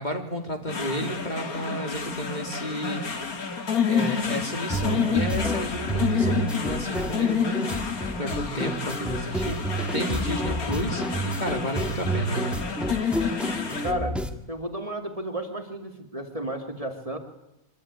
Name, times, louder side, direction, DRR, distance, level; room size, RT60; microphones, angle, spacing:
voice 1, 0.0-3.0 3.9-7.6 8.2-9.6 9.9-11.0 11.4-12.6, equal, 30° left, 4 dB, 3.3 m, -32 dB
sound 1, 0.7-13.9, left 6 dB, 75° left, 2.7 m, -29 dB
sound 2, 4.7-14.3, right 2 dB, ahead, 2.1 m, -30 dB
voice 2, 13.8-14.2 14.5-17.2, right 1 dB, 25° right, 5 dB, 2.8 m, -32 dB
24.5 x 24.5 x 9.9 m, 0.88 s
omnidirectional pair, 1.5 m